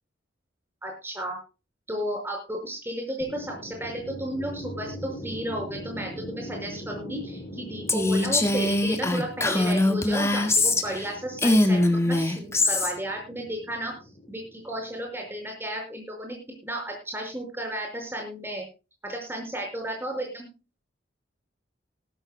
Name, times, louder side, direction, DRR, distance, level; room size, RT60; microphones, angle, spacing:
voice 1, 0.8-1.4 1.9-13.9 14.3-16.4 16.6-18.6 19.0-20.2, right 1 dB, 10° right, 1 dB, 5.5 m, -33 dB
sound 1, 3.2-15.3, equal, 30° left, 3.5 m, -41 dB
Female speech woman speaking, 7.9-11.1 11.4-12.9, left 2 dB, 15° left, 1.7 m, -22 dB
19.0 x 13.0 x 2.2 m, 0.31 s
head